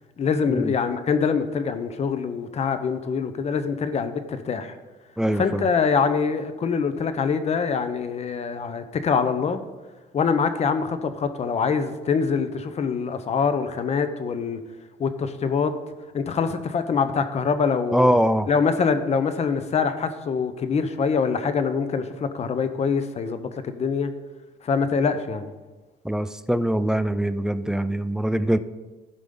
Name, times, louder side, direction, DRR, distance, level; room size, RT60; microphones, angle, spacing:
voice 1, 0.2-4.7 5.3-9.6 10.1-14.6 15.0-15.7 16.1-18.1 18.5-24.1 24.6-25.5, left 5 dB, 40° left, 10 dB, 0.8 m, -24 dB
voice 2, 5.2-5.7 17.9-18.5 26.0-28.6, equal, 5° right, 12 dB, 0.4 m, -23 dB
15.0 x 5.1 x 3.9 m, 1.2 s
cardioid pair, 110°, 17 cm